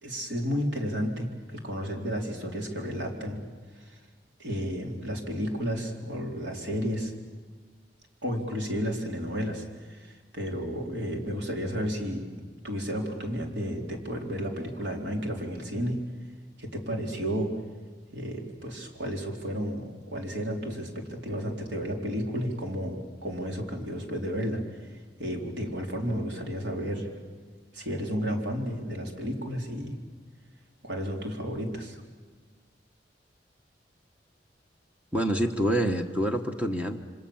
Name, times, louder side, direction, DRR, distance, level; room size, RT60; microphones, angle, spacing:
voice 1, 0.0-3.4 3.9-4.0 4.4-7.1 8.2-12.3 12.6-16.0 16.6-17.5 18.1-24.6 25.2-27.1 27.7-30.0 30.8-32.0, equal, 80° right, 2 dB, 4.1 m, -32 dB
voice 2, 35.1-37.0, equal, 10° right, 4 dB, 1.3 m, -26 dB
28.0 x 25.0 x 7.3 m, 1.5 s
head